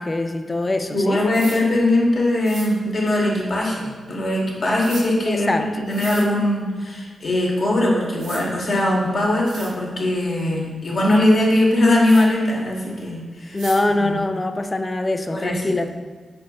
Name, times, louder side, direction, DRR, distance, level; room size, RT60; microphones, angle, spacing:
voice 1, 0.0-1.2 5.3-5.7 13.5-15.9, left 2 dB, 30° left, 8 dB, 0.4 m, -23 dB
voice 2, 0.9-13.6 13.9-14.2 15.3-15.7, left 1 dB, 60° left, -3 dB, 1.2 m, -20 dB
sound 1, 1.3-1.6 2.4-2.7 4.8-5.0 5.9-6.2 7.7-7.8 8.2-8.4 9.1-9.2 9.5-9.7 12.0-12.2 13.6-13.8, right 4 dB, 85° right, 0.6 m, -36 dB
5.0 x 4.3 x 2.3 m, 1.5 s
supercardioid pair, 45°, 0 cm